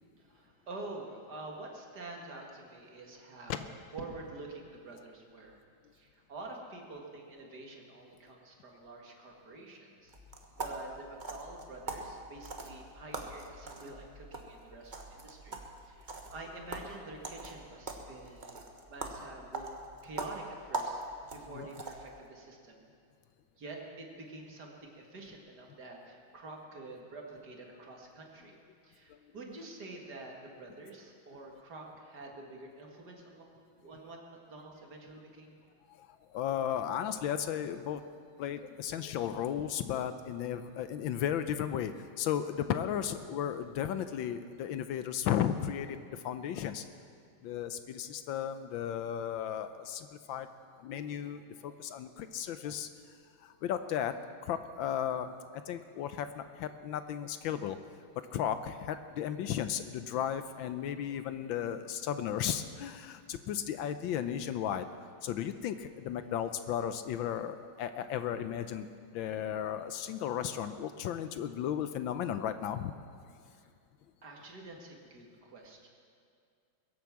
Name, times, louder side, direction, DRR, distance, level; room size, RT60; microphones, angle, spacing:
voice 1, 0.2-5.6 5.9-10.1 10.6-15.6 15.8-18.6 18.9-19.7 20.0-21.0 21.3-22.8 23.6-28.6 28.8-33.5 33.8-35.5 73.6-73.7 74.2-75.9, right 2 dB, 50° right, 0 dB, 2.4 m, -47 dB
sound 1, 10.1-22.2, right 2 dB, 30° right, 1.0 m, -42 dB
voice 2, 35.9-38.0 38.4-46.8 47.4-50.5 50.8-52.9 53.4-54.1 54.4-57.8 58.3-64.9 65.2-68.9 69.1-72.9, left 9 dB, 75° left, 10 dB, 1.3 m, -35 dB
22.0 x 8.3 x 7.3 m, 2.3 s
omnidirectional pair, 2.3 m